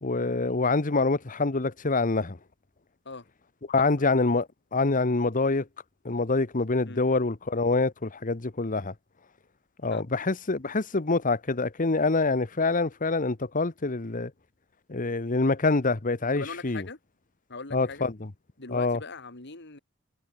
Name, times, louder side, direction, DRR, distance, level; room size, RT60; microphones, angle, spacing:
voice 1, 0.0-2.4 3.7-5.7 6.0-8.9 9.8-14.3 14.9-16.8 17.7-18.3 18.7-19.0, left 3 dB, 40° left, 1.1 m, -26 dB
voice 2, 16.3-17.0 17.5-18.1 18.6-19.8, left 3 dB, 55° left, 2.8 m, -40 dB
head